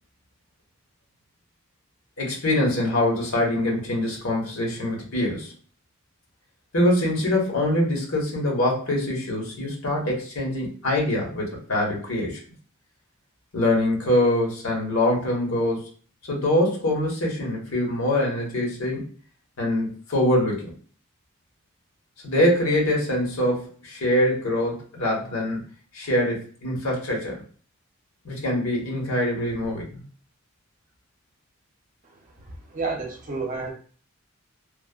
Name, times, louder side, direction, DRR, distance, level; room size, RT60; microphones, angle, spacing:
voice 1, 2.2-5.5 6.7-12.4 13.5-15.9 16.3-19.0 19.6-20.7 22.2-25.6 25.9-27.4 28.2-30.0, left 1 dB, 80° left, -2 dB, 1.2 m, -24 dB
voice 2, 32.7-33.7, right 3 dB, 35° right, 1 dB, 0.6 m, -29 dB
3.2 x 2.0 x 2.4 m, 0.42 s
head